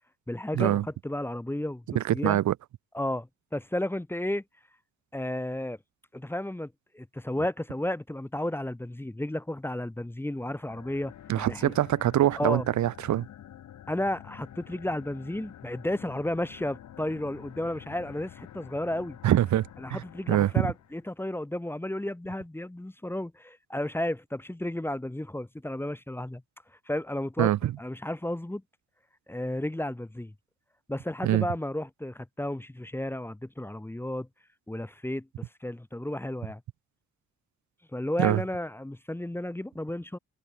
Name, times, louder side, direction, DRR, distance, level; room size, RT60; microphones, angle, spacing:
voice 1, 0.3-1.8 2.1-2.4 2.9-4.4 5.1-5.8 6.1-11.7 12.4-12.7 13.9-19.2 19.8-26.4 26.9-27.5 27.8-28.6 29.3-30.3 30.9-34.3 34.7-35.3 35.6-36.6 37.9-40.2, left 1 dB, 5° left, 1.4 m, -33 dB
voice 2, 1.9-2.5 11.3-13.3 19.2-20.0 20.3-20.7 27.4-27.7 31.2-31.5 38.2-38.4, right 13 dB, 70° right, 1.5 m, -24 dB
sound 1, 10.6-21.1, left 11 dB, 70° left, 4.6 m, -48 dB
cardioid pair, 90°, 30 cm